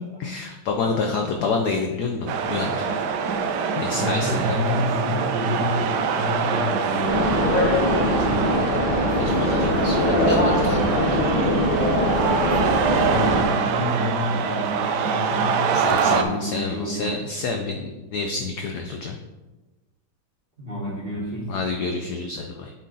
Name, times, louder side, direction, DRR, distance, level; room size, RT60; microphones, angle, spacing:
voice 1, 0.0-2.9 3.8-4.6 9.2-11.2 15.7-19.2 21.5-22.7, left 4 dB, 75° left, 3 dB, 0.9 m, -28 dB
voice 2, 0.8-1.2 3.9-7.6 8.1-8.7 12.6-17.1 20.6-21.5, left 1 dB, 35° right, -4 dB, 1.0 m, -29 dB
sound 1, 2.3-16.2, right 6 dB, 75° right, 1.0 m, -24 dB
sound 2, 7.1-13.4, left 1 dB, 55° left, 2.0 m, -22 dB
8.4 x 3.8 x 3.9 m, 1.1 s
omnidirectional pair, 2.3 m